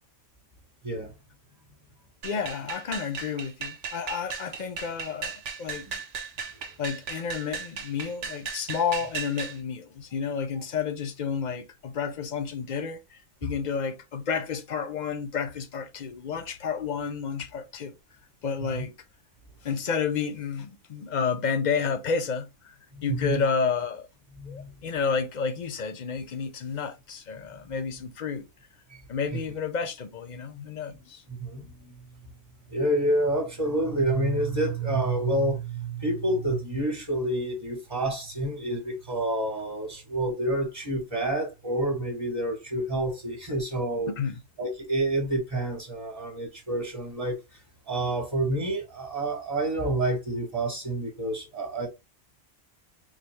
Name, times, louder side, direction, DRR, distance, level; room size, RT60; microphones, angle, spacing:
voice 1, 2.2-6.0 6.8-18.0 18.4-18.9 19.6-24.1 24.5-28.5 29.1-31.2 44.1-44.4, left 6 dB, 50° left, 0.6 m, -31 dB
sound 1, 2.2-9.6, right 6 dB, 75° right, 1.1 m, -36 dB
voice 2, 22.9-23.4 24.4-24.7 28.9-29.0 29.3-29.4 30.9-32.1 32.7-44.1 44.6-47.4 47.9-51.9, right 1 dB, 25° right, 1.1 m, -28 dB
4.0 x 2.6 x 3.1 m
omnidirectional pair, 1.2 m